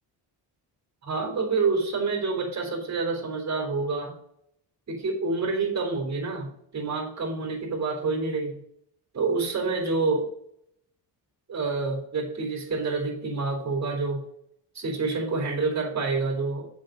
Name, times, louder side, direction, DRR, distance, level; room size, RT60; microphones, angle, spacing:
voice 1, 1.0-4.2 4.9-8.6 9.1-10.3 11.5-14.3 14.7-16.7, right 4 dB, 35° right, 0 dB, 3.5 m, -28 dB
8.1 x 6.2 x 5.2 m, 0.73 s
cardioid pair, 145°, 45 cm